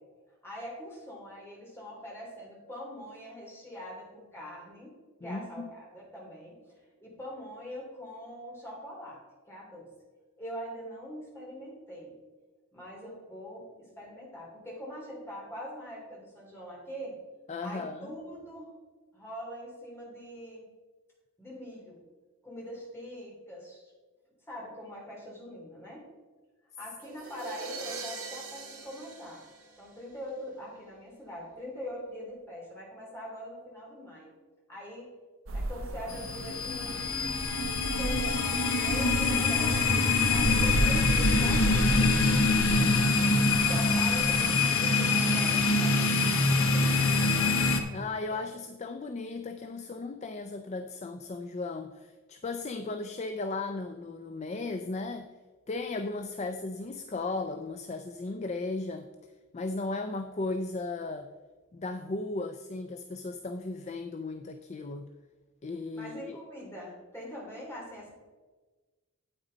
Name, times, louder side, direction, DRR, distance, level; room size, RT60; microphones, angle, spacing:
voice 1, 0.4-9.9 10.4-12.2 12.7-17.1 17.6-18.7 19.1-20.7 21.4-22.0 22.4-23.9 24.4-26.1 26.8-29.4 29.8-34.3 34.7-35.1 35.5-37.1 37.8-42.5 43.1-47.5 48.1-48.2 65.9-68.1, equal, 10° left, -4 dB, 3.1 m, -43 dB
voice 2, 5.2-5.7 17.5-18.1 47.9-55.3 55.7-59.1 59.5-61.3 61.7-65.1 65.6-66.4, left 3 dB, 30° left, 7 dB, 0.4 m, -36 dB
sound 1, 27.0-30.3, right 4 dB, 90° right, 2.3 m, -42 dB
sound 2, 35.5-44.4, right 1 dB, 60° right, 0.6 m, -34 dB
sound 3, 36.1-47.8, left 3 dB, 75° left, 1.1 m, -25 dB
8.8 x 8.5 x 4.0 m, 1.3 s
head